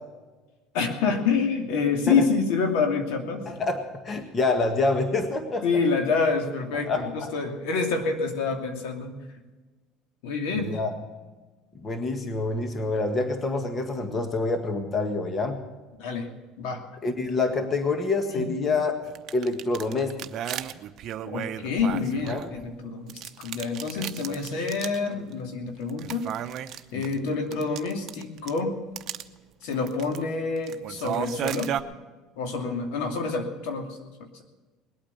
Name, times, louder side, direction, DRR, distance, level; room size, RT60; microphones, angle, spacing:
voice 1, 0.7-3.4 5.6-9.1 10.2-10.8 16.0-16.3 16.6-16.8 18.3-18.5 21.2-26.3 26.7-28.8 29.6-31.7 32.4-34.0, left 4 dB, 80° left, 4 dB, 2.6 m, -27 dB
voice 2, 3.5-5.6 6.7-7.3 10.6-10.9 11.7-15.6 17.0-19.0 19.3-20.3 22.3-22.5 26.9-27.3, left 3 dB, 30° left, 6 dB, 1.6 m, -27 dB
sound 1, 19.0-22.7 23.1-25.1 25.3-25.4 25.9-28.6 29.0-29.2 29.7-30.2 30.6-31.8, right 10 dB, 50° right, 0.8 m, -34 dB
21.0 x 8.8 x 6.8 m, 1.2 s
cardioid pair, 125°, 0 cm